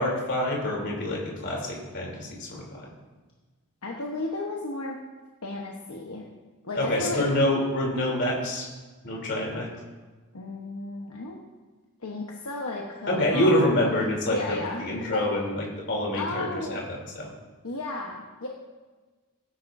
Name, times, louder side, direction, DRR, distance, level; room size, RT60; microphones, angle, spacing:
voice 1, 0.0-2.8 6.7-8.7 9.0-9.7 13.1-16.8 17.1-17.3, left 1 dB, 50° left, -2 dB, 3.4 m, -26 dB
voice 2, 3.8-5.0 5.4-6.2 6.6-7.3 10.3-11.4 12.0-14.0 14.3-14.9 15.1-15.2 16.2-16.9 17.6-18.5, left 2 dB, 75° left, -1 dB, 1.2 m, -33 dB
18.0 x 10.0 x 2.7 m, 1.3 s
head